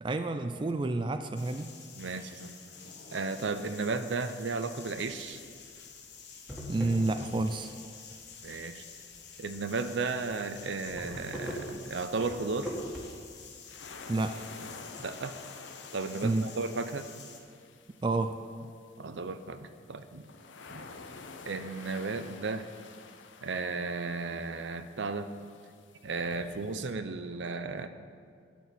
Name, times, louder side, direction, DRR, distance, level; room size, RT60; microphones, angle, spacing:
voice 1, 0.0-1.7 6.7-7.7 14.1-14.5 16.2-16.5 18.0-18.4, right 2 dB, 25° right, 8 dB, 0.3 m, -29 dB
sound 1, 1.3-17.4, left 6 dB, 65° left, 1.3 m, -50 dB
voice 2, 1.9-2.6 3.1-5.4 8.4-8.8 9.4-12.8 15.0-15.4 15.9-17.1 19.0-20.3 20.7-20.9 21.5-22.7 23.4-25.3 26.0-27.9, right 4 dB, 75° right, 10 dB, 0.6 m, -34 dB
sound 2, 5.4-5.5 5.9-6.0 6.3-7.6 7.9-8.6 9.1-9.3 9.5-9.6 9.9-10.0 10.3-13.0, equal, ahead, 1.7 m, -40 dB
sound 3, 11.4-26.9, left 4 dB, 85° left, 0.7 m, -51 dB
12.5 x 4.6 x 8.3 m, 2.2 s
head